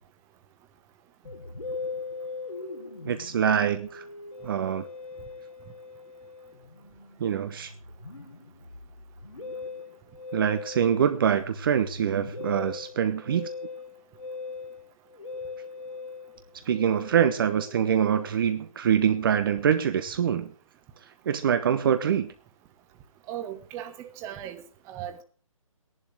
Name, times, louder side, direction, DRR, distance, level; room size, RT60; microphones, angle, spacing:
Musical instrument, 1.2-18.8, left 4 dB, 85° left, 3.9 m, -41 dB
voice 1, 3.0-4.0 4.4-4.8 7.2-7.7 10.3-13.5 16.6-20.5 21.2-22.3, right 8 dB, 40° right, 1.0 m, -24 dB
voice 2, 23.3-24.6 24.9-25.2, right 11 dB, 15° right, 1.3 m, -37 dB
16.0 x 11.0 x 4.8 m
figure-of-eight pair, 145°, 17 cm